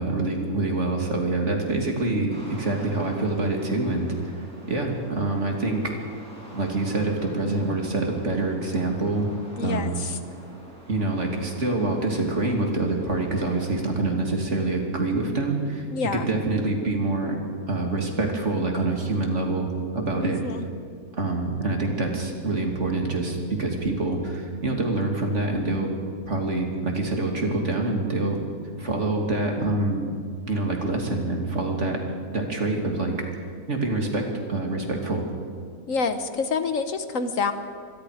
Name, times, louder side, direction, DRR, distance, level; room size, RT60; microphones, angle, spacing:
voice 1, 0.0-5.8 6.5-9.3 9.6-9.9 10.9-15.9 16.1-17.4 17.7-19.7 19.9-20.4 21.2-25.9 26.2-28.4 28.8-30.1 30.5-32.0 32.3-33.1 33.7-35.2, right 2 dB, 50° right, 1 dB, 3.0 m, -26 dB
sound 1, 2.3-13.8, equal, 5° left, 7.5 m, -46 dB
voice 2, 9.6-10.2 15.9-16.3 20.2-20.6 35.9-37.5, left 4 dB, 60° left, 9 dB, 1.4 m, -27 dB
26.0 x 21.5 x 5.0 m, 2.2 s
omnidirectional pair, 1.6 m